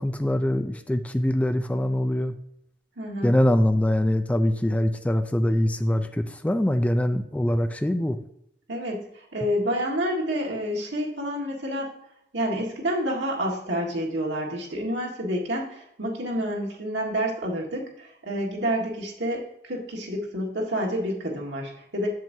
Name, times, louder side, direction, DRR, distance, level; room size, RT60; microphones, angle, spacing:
voice 1, 0.0-2.3 3.2-8.2, left 1 dB, 10° left, 8 dB, 0.4 m, -23 dB
voice 2, 3.0-3.4 8.7-12.0 12.3-22.1, equal, 85° right, -1 dB, 1.8 m, -29 dB
7.5 x 7.5 x 2.7 m, 0.76 s
head